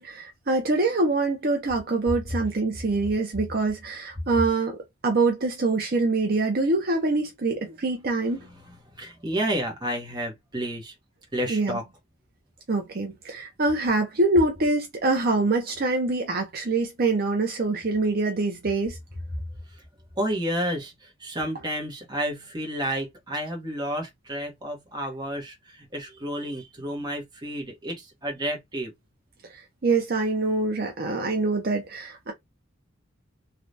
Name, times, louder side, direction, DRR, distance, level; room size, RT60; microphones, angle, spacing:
voice 1, 0.0-4.8 5.0-8.4 11.5-11.8 12.7-19.0 29.8-32.3, right 3 dB, 50° right, 0.6 m, -25 dB
voice 2, 8.2-10.9 11.3-11.8 20.2-28.9, equal, 20° right, 1.0 m, -31 dB
3.2 x 2.4 x 2.6 m
head